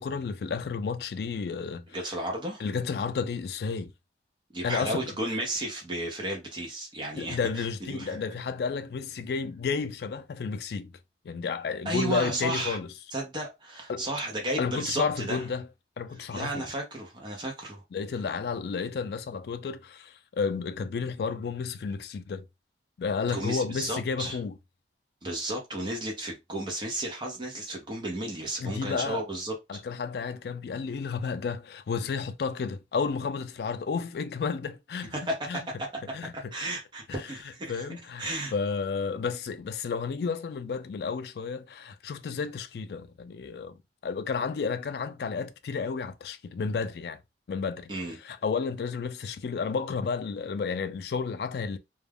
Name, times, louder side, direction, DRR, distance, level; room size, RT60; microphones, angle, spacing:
voice 1, 0.0-1.9 2.6-3.9 4.6-5.1 7.1-10.9 11.2-12.9 13.9-14.0 14.6-15.7 16.0-16.7 17.9-22.4 23.0-24.5 28.6-29.2 29.7-35.1 35.5-35.6 36.1-36.5 37.1-37.3 37.7-43.8 44.0-47.2 47.5-47.9 48.2-51.8, left 5 dB, 60° left, 0.3 m, -32 dB
voice 2, 1.9-2.6 4.5-8.2 11.8-12.8 13.1-15.4 16.3-17.8 23.3-24.4 25.2-29.5 35.1-36.2 36.5-37.8 38.2-38.5 47.9-48.2, right 1 dB, 25° right, 0.6 m, -33 dB
2.3 x 2.1 x 3.3 m
head